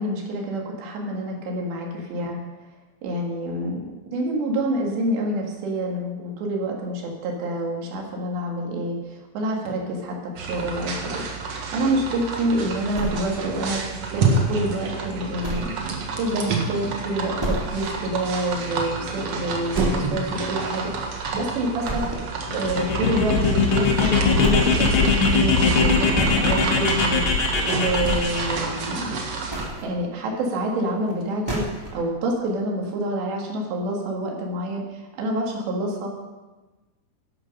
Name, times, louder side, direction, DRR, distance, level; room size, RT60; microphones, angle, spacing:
voice 1, 0.0-2.4 3.0-11.2 11.7-22.1 22.5-29.2 29.8-31.6 31.9-36.1, right 1 dB, 85° right, 0 dB, 4.4 m, -27 dB
sound 1, 10.4-29.7, right 4 dB, 55° right, 1.9 m, -29 dB
sound 2, 12.9-13.7 14.1-14.2 14.7-14.8 15.4-15.9 16.2-16.3 16.7-16.8 17.4-17.9 18.3-18.4 18.9-19.0 19.7-20.3 20.7-21.4 21.8-22.4 23.7-23.8 24.4-24.8 25.8-26.4 27.4-27.6 27.9-28.6 29.2-29.8 31.1-31.2 31.5-32.0, equal, 10° right, 1.5 m, -30 dB
sound 3, 22.5-28.6, left 4 dB, 70° left, 1.2 m, -21 dB
12.5 x 11.5 x 5.5 m, 1.2 s
omnidirectional pair, 4.8 m